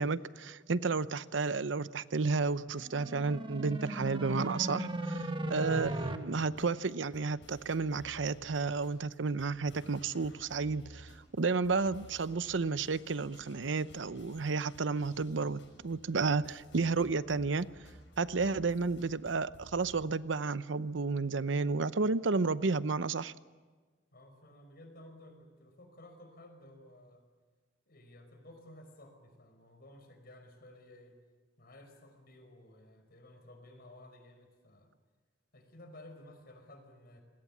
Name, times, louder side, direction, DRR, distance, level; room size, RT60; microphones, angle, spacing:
voice 1, 0.0-17.7 18.2-23.3, right 4 dB, 90° right, 0.7 m, -32 dB
sound 1, 2.8-6.2, right 1 dB, 25° right, 1.5 m, -37 dB
sound 2, 6.5-20.1, equal, 75° left, 6.1 m, -56 dB
voice 2, 24.1-27.2 27.9-31.2 31.6-34.9 35.5-37.2, left 1 dB, 55° left, 5.1 m, -55 dB
29.0 x 21.0 x 7.4 m
head